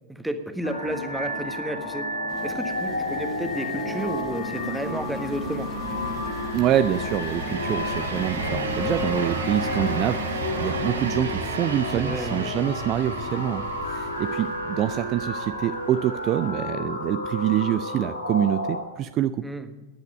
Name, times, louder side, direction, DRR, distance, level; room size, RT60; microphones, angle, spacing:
voice 1, 0.1-2.1 2.4-5.7 11.9-12.5 19.4-19.7, right 1 dB, 5° right, 8 dB, 1.4 m, -31 dB
sound 1, 0.6-18.8, left 2 dB, 85° left, 3.5 m, -31 dB
sound 2, 2.3-14.6, left 3 dB, 25° left, 1.7 m, -40 dB
sound 3, 4.6-16.5, right 4 dB, 70° right, 1.9 m, -34 dB
voice 2, 6.5-19.4, right 11 dB, 35° right, 13 dB, 0.5 m, -26 dB
14.0 x 11.0 x 5.3 m, 1.1 s
figure-of-eight pair, 90°, 0 cm